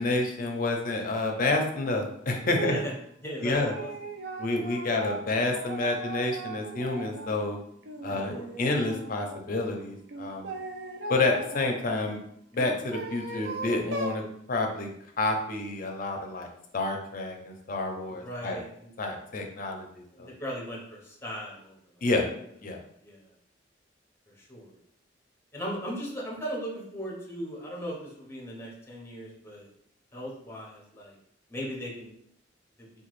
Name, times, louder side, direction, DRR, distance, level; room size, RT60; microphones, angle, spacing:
voice 1, 0.0-2.8 3.4-3.7 4.4-7.6 8.0-10.6 11.1-12.2 12.5-14.2 14.5-14.9 15.2-16.5 16.7-18.6 19.0-20.3 22.0-22.3 22.6-22.8, left 2 dB, 50° left, 3 dB, 0.5 m, -29 dB
sound 1, 2.5-2.9 3.4-7.4 7.8-9.4 10.1-11.7 12.5-14.2, right 3 dB, 70° right, 0.4 m, -38 dB
voice 2, 2.6-2.9 3.2-3.9 8.1-8.5 13.7-13.8 18.1-18.9 20.1-21.8 23.0-23.3 24.3-24.7 25.5-29.7 30.1-31.2 31.5-32.1 32.8-32.9, equal, 15° left, -3 dB, 0.7 m, -38 dB
2.9 x 2.3 x 3.0 m, 0.70 s
head